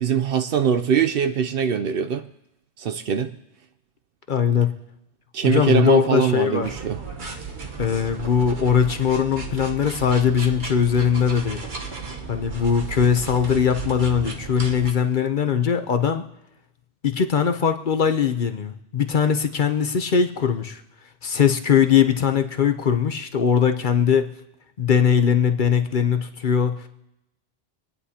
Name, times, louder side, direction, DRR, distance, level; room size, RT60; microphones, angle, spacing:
voice 1, 0.0-2.2 2.8-3.3 5.3-7.0, right 7 dB, 60° right, 9 dB, 0.7 m, -22 dB
voice 2, 4.3-4.7 5.4-6.7 7.8-11.6 12.3-16.2 17.0-20.8 21.2-24.3 24.8-26.8, left 7 dB, 50° left, 7 dB, 0.8 m, -20 dB
sound 1, 6.6-14.9, right 5 dB, 45° right, 1.2 m, -34 dB
26.0 x 9.9 x 2.8 m, 0.86 s
omnidirectional pair, 1.2 m